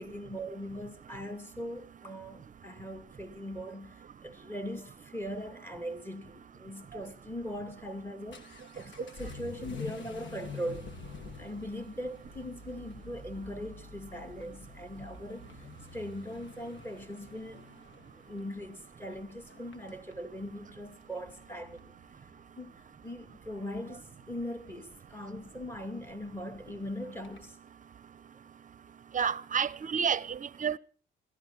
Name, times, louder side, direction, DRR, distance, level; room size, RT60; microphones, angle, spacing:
voice 1, 0.0-10.9 11.4-15.7 15.9-17.7 18.2-21.9 22.6-27.6, equal, 10° left, 2.7 m, -40 dB
Vehicle / Accelerating revving vroom, 7.7-27.5, left 4 dB, 70° left, 3.0 m, -49 dB
voice 2, 29.1-30.8, right 7 dB, 40° right, 0.7 m, -30 dB
17.5 x 14.0 x 5.9 m
cardioid pair, 90°, 20 cm